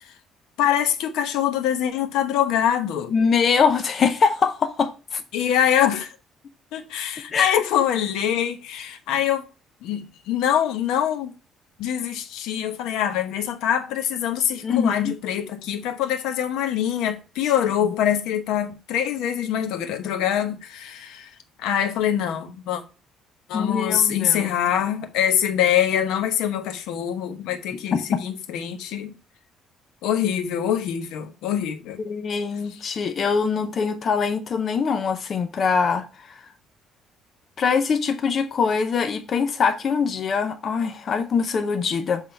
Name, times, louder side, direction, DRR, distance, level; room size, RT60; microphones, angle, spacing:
voice 1, 0.6-3.2 5.3-6.1 6.7-9.4 9.8-11.3 11.8-21.3 21.6-22.8 23.5-29.1 30.0-32.0 32.7-32.9, left 10 dB, 85° left, 1.0 m, -24 dB
voice 2, 3.1-5.2 7.3-7.6 14.6-15.1 23.5-24.5 32.0-36.1 37.6-42.2, left 5 dB, 30° left, 0.6 m, -23 dB
7.4 x 3.6 x 4.4 m
cardioid pair, 175°, 0 cm